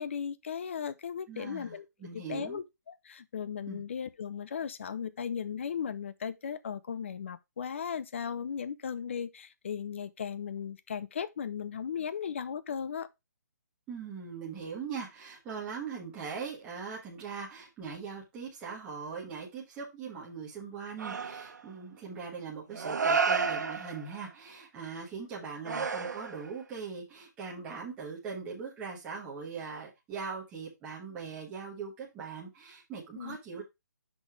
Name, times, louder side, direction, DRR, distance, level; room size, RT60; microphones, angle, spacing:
voice 1, 0.0-1.9 2.3-13.1 33.2-33.4, left 7 dB, 45° left, 0.6 m, -36 dB
voice 2, 1.3-2.6 3.7-3.8 13.9-33.6, right 5 dB, 10° right, 1.3 m, -41 dB
sound 1, 21.0-21.7 22.7-24.2 25.6-26.6, right 5 dB, 75° right, 1.1 m, -31 dB
6.0 x 4.1 x 4.6 m
hypercardioid pair, 170°, 10 cm